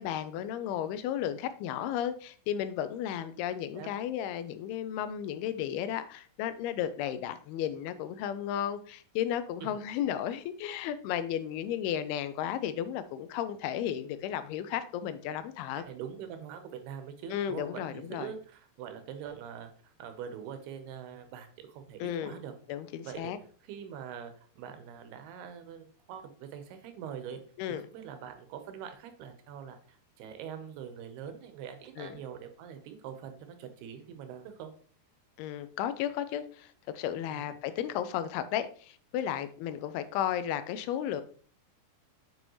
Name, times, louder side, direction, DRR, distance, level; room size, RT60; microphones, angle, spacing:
voice 1, 0.0-15.8 17.3-18.3 22.0-22.4 22.7-23.4 27.6-27.8 32.0-32.2 35.4-41.2, left 10 dB, 80° left, 12 dB, 2.4 m, -34 dB
voice 2, 15.8-22.5 23.0-23.3 23.7-27.4 27.7-34.7 37.3-37.5, right 8 dB, 80° right, 7 dB, 2.9 m, -43 dB
7.8 x 5.3 x 3.0 m, 0.44 s
omnidirectional pair, 4.6 m